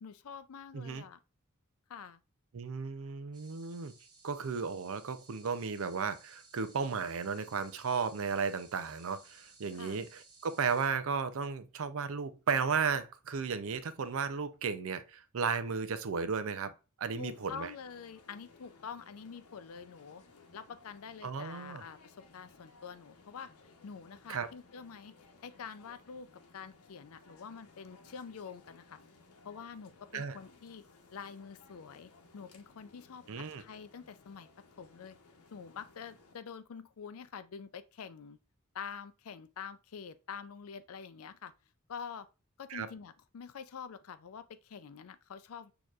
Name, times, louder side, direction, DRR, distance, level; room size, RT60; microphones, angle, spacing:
voice 1, 0.0-1.2 1.9-2.2 9.7-10.0 17.1-20.2 20.5-23.5 23.8-25.2 25.4-29.0 29.4-30.8 31.1-34.5 34.8-35.2 35.5-38.4 38.7-41.5 41.9-42.3 42.6-45.7, left 6 dB, 70° left, 0.4 m, -46 dB
voice 2, 2.5-3.9 4.2-17.7 21.2-21.8 24.3-24.5 30.1-30.4 33.3-33.6 42.7-42.9, right 5 dB, 65° right, 0.5 m, -34 dB
sound 1, 3.3-10.9, right 3 dB, 20° right, 1.2 m, -59 dB
sound 2, 17.2-36.3, left 3 dB, 90° left, 0.9 m, -60 dB
6.4 x 2.9 x 2.4 m
head